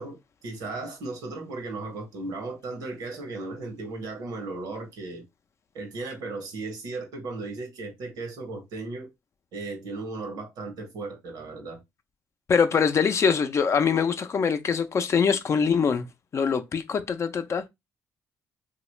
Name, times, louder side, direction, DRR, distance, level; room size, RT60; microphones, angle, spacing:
voice 1, 0.0-5.2 5.7-9.1 9.5-11.8, right 3 dB, 80° right, 1.0 m, -36 dB
voice 2, 12.5-16.1 16.3-17.7, left 6 dB, 45° left, 0.5 m, -23 dB
3.0 x 2.3 x 3.1 m
supercardioid pair, 65°, 7 cm